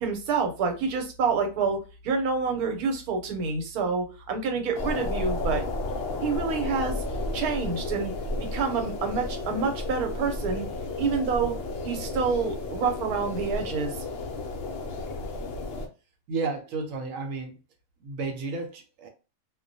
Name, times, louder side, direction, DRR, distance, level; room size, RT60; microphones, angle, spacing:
voice 1, 0.0-5.7 6.2-7.0 7.3-8.1 8.5-10.7 11.0-11.6 11.8-14.0, right 5 dB, 90° right, 1.1 m, -27 dB
sound 1, 4.7-15.9, left 2 dB, 70° left, 0.5 m, -32 dB
voice 2, 16.3-17.6 18.0-19.1, right 4 dB, 70° right, 0.9 m, -32 dB
2.3 x 2.1 x 2.6 m
omnidirectional pair, 1.6 m